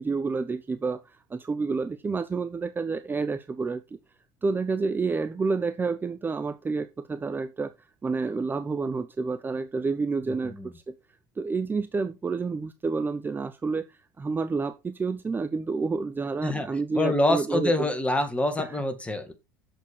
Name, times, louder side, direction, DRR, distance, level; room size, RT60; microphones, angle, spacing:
voice 1, 0.0-3.8 4.4-7.7 8.0-10.9 11.4-17.9 18.6-18.7, right 4 dB, 20° right, 0.7 m, -29 dB
voice 2, 16.9-19.3, left 2 dB, 10° left, 2.0 m, -26 dB
8.2 x 6.6 x 4.4 m
hypercardioid pair, 75°, 11 cm